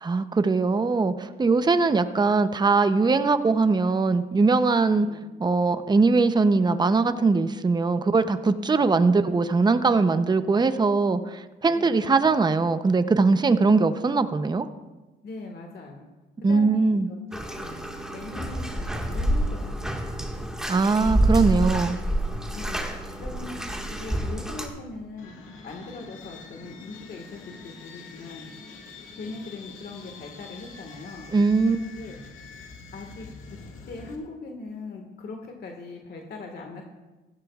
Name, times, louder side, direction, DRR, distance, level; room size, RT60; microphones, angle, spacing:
voice 1, 0.0-5.1 5.4-14.7 16.4-17.1 20.7-22.0 31.3-31.8, right 4 dB, 20° right, 10 dB, 0.7 m, -21 dB
voice 2, 1.6-2.0 5.0-5.2 10.1-10.6 11.7-12.1 15.2-16.1 16.4-17.7 18.1-20.0 22.5-22.9 23.2-25.3 25.6-28.5 29.1-31.3 31.7-32.2 32.9-33.6 33.9-36.8, left 3 dB, 55° left, 2 dB, 1.7 m, -40 dB
Bathtub (filling or washing), 17.3-24.7, right 1 dB, 5° right, 1.7 m, -28 dB
sound 1, 25.2-34.2, left 4 dB, 80° left, 2.0 m, -45 dB
16.0 x 14.0 x 2.4 m, 1.1 s
cardioid pair, 90°, 20 cm